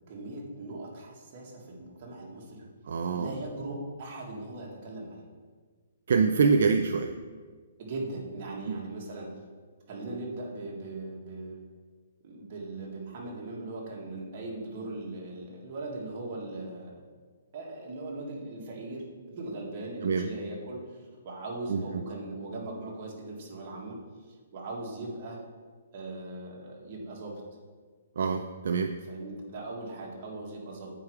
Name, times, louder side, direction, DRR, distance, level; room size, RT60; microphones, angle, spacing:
voice 1, 0.1-2.6 2.9-5.2 7.8-9.3 9.9-11.6 12.2-17.0 17.5-19.0 19.4-24.0 24.3-25.4 25.9-27.3 29.1-30.9, right 2 dB, 40° right, -2 dB, 2.0 m, -39 dB
voice 2, 2.9-3.3 6.1-7.1 8.7-8.8 20.0-20.3 21.7-22.0 28.2-28.9, right 5 dB, 65° right, 6 dB, 0.4 m, -25 dB
8.5 x 4.9 x 4.8 m, 1.5 s
hypercardioid pair, 160°, 0 cm